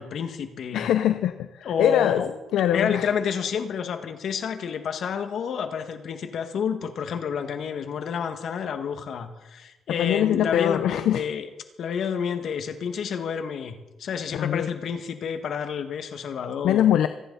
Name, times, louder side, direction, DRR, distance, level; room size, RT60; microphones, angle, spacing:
voice 1, 0.0-0.9 1.6-2.3 2.7-11.5 11.8-16.8, left 7 dB, 65° left, 7 dB, 1.8 m, -29 dB
voice 2, 0.7-2.2 2.5-3.1 9.9-11.2 14.3-14.7 16.6-17.1, left 11 dB, 80° left, 10 dB, 0.6 m, -22 dB
26.5 x 10.0 x 4.1 m, 1.1 s
cardioid pair, 90°, 0 cm